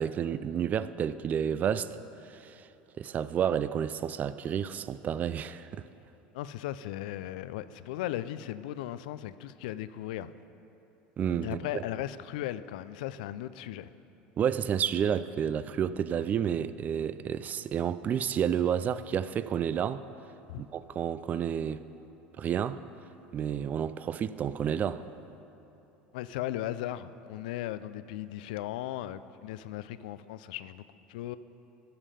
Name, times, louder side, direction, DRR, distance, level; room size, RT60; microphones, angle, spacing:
voice 1, 0.0-2.0 2.3-2.6 3.0-5.8 11.2-11.8 14.4-20.0 20.6-21.8 22.4-22.8 23.3-25.1, right 8 dB, 35° right, 0.3 m, -30 dB
voice 2, 6.3-10.3 11.4-13.9 20.5-20.6 26.1-30.8 31.1-31.4, left 13 dB, 75° left, 0.3 m, -37 dB
12.5 x 5.6 x 5.0 m
hypercardioid pair, 90°, 5 cm